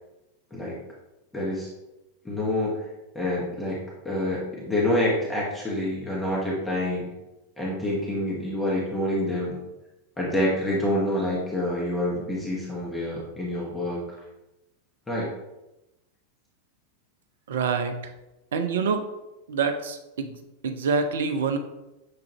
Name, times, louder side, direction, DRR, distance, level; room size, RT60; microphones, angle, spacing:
voice 1, 1.3-1.7 2.2-2.9 3.1-7.1 7.6-9.6 10.2-14.2 15.1-15.3, left 1 dB, 10° left, -5 dB, 0.9 m, -27 dB
voice 2, 17.5-18.0 18.5-19.1 19.5-20.4 20.6-21.6, right 5 dB, 60° right, 8 dB, 0.4 m, -26 dB
6.6 x 2.4 x 2.9 m, 0.97 s
figure-of-eight pair, 90°, 0 cm